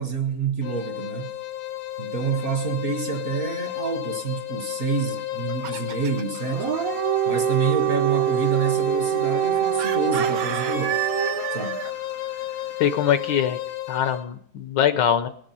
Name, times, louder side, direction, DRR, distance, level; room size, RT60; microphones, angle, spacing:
voice 1, 0.0-1.3 2.0-6.7 7.2-11.1 11.5-11.8, right 5 dB, 50° right, 1.1 m, -28 dB
sound 1, 0.6-14.3, left 15 dB, 85° left, 1.7 m, -33 dB
Chicken rooster, 5.2-6.4 9.8-11.9, right 11 dB, 90° right, 1.6 m, -30 dB
Dog, 6.4-11.6, right 11 dB, 70° right, 0.8 m, -25 dB
voice 2, 12.8-13.6 13.9-15.3, left 9 dB, 70° left, 1.2 m, -22 dB
19.5 x 7.4 x 5.4 m
omnidirectional pair, 2.2 m